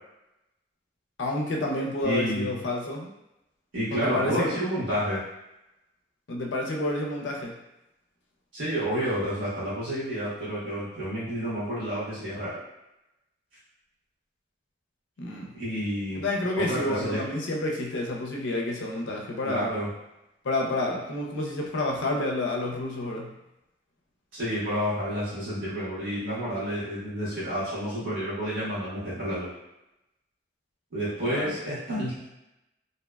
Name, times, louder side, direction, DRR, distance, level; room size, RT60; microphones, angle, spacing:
voice 1, 1.2-3.1 3.9-4.5 6.3-7.5 15.2-15.5 16.1-19.7 20.4-23.3 31.3-31.5, left 2 dB, 70° left, 0 dB, 0.4 m, -29 dB
voice 2, 2.0-2.6 3.7-5.2 8.5-12.6 15.5-16.3 16.5-17.2 19.4-19.9 24.3-29.5 30.9-32.2, equal, 85° right, -11 dB, 1.1 m, -30 dB
2.7 x 2.1 x 2.2 m, 0.90 s
head